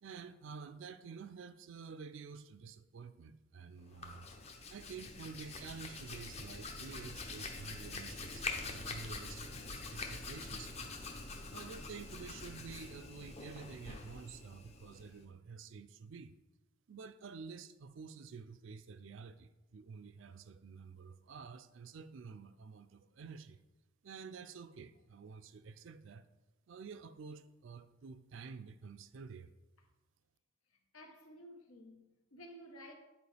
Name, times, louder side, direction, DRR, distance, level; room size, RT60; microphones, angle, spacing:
voice 1, 0.0-4.3 4.7-10.7 11.5-16.3 16.9-23.6 24.0-26.3 26.7-29.5, right 5 dB, 60° right, 0.4 m, -50 dB
Hands, 3.8-15.2, left 3 dB, 30° left, 0.7 m, -45 dB
voice 2, 30.7-32.9, equal, 80° left, 1.1 m, -54 dB
9.4 x 4.5 x 3.3 m
head